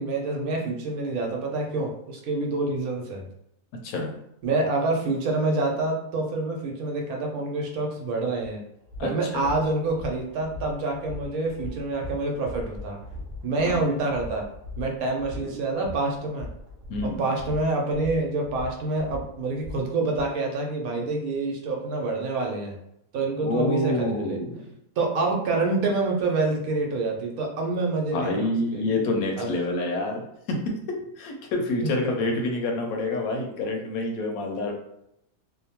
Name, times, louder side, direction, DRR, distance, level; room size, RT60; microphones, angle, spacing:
voice 1, 0.0-3.3 4.4-8.6 9.0-13.0 13.4-14.5 14.8-16.5 17.0-22.8 23.1-24.4 25.0-28.8 29.4-29.5 31.8-31.9, right 2 dB, 80° right, 1 dB, 1.1 m, -27 dB
voice 2, 3.8-4.2 9.0-9.4 13.5-13.8 16.9-17.2 23.4-24.6 28.1-30.6 30.9-34.7, left 2 dB, 80° left, 2 dB, 1.0 m, -27 dB
sound 1, 8.8-20.2, left 2 dB, 55° right, 0.7 m, -40 dB
2.7 x 2.1 x 2.8 m, 0.78 s
omnidirectional pair, 1.5 m